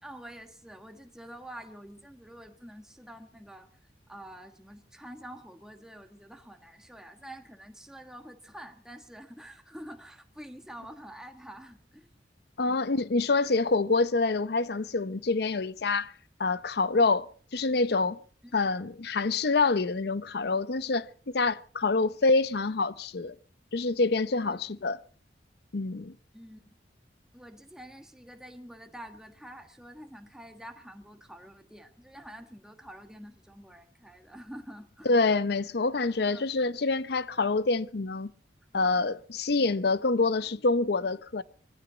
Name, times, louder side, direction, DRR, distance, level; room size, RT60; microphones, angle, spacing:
voice 1, 0.0-3.7 4.1-12.1 12.6-12.8 18.4-18.5 24.4-24.6 26.3-26.7 27.3-35.1 36.3-36.5, equal, 5° right, 1.4 m, -47 dB
voice 2, 12.6-16.1 16.4-18.2 18.5-23.3 23.7-25.0 25.7-26.1 35.1-38.3 38.7-41.4, left 3 dB, 60° left, 0.7 m, -26 dB
22.5 x 15.5 x 3.9 m
head